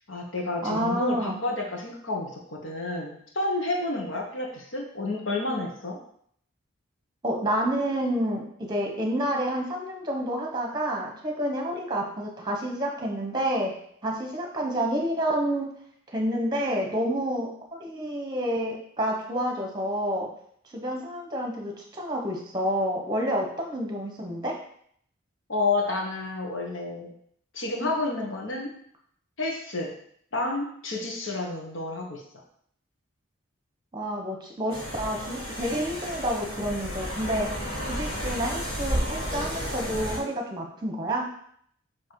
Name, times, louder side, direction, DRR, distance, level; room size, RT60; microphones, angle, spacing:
voice 1, 0.0-6.0 25.5-27.1 27.5-28.7 29.4-29.9 30.3-32.2, left 2 dB, 65° left, 1 dB, 1.3 m, -30 dB
voice 2, 0.6-1.4 7.2-13.7 14.0-15.7 16.1-20.3 20.6-24.6 33.9-37.5 37.8-41.3, equal, 20° right, 1 dB, 1.1 m, -29 dB
sound 1, 34.7-40.2, equal, 45° left, 2.5 m, -32 dB
7.3 x 3.0 x 4.8 m, 0.65 s
head